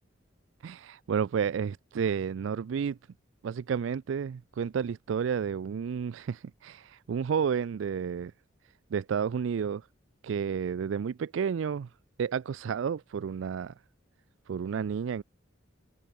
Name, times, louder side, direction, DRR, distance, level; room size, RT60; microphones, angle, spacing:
voice 1, 0.6-3.0 3.4-8.3 8.9-9.9 10.2-11.9 12.2-13.7 14.5-15.2, right 7 dB, 80° right, 0.4 m, -31 dB
head